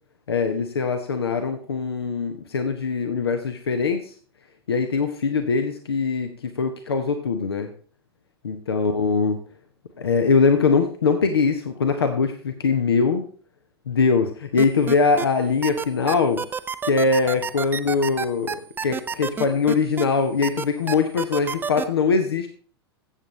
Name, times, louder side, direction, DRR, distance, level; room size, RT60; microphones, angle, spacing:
voice 1, 0.3-4.1 4.7-7.7 8.4-9.4 10.0-13.2 13.9-16.4 16.8-22.5, left 4 dB, 75° left, 7 dB, 1.0 m, -22 dB
sound 1, 14.6-15.3 15.6-20.0 20.4-21.8, right 6 dB, 15° right, 0.6 m, -28 dB
15.0 x 7.6 x 3.2 m, 0.42 s
figure-of-eight pair, 95°, 13 cm